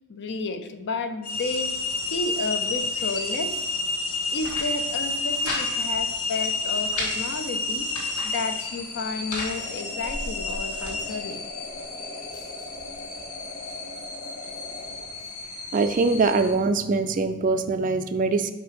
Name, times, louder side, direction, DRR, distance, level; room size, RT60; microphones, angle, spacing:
voice 1, 0.1-1.8 2.0-3.6 4.3-7.9 8.2-11.4 12.3-12.5, left 3 dB, 50° left, 9 dB, 0.5 m, -32 dB
sound 1, 1.2-16.6, left 3 dB, 65° left, 1.1 m, -31 dB
sound 2, 4.2-4.7 5.0-5.6 5.9-6.0 6.4-7.1 7.7-8.3 8.9-9.5 10.2-11.0, left 2 dB, 90° left, 1.9 m, -35 dB
sound 3, 9.6-15.7, left 2 dB, 25° left, 0.9 m, -41 dB
voice 2, 15.7-18.5, right 3 dB, 35° right, 10 dB, 0.3 m, -23 dB
5.6 x 5.1 x 4.7 m, 1.2 s
head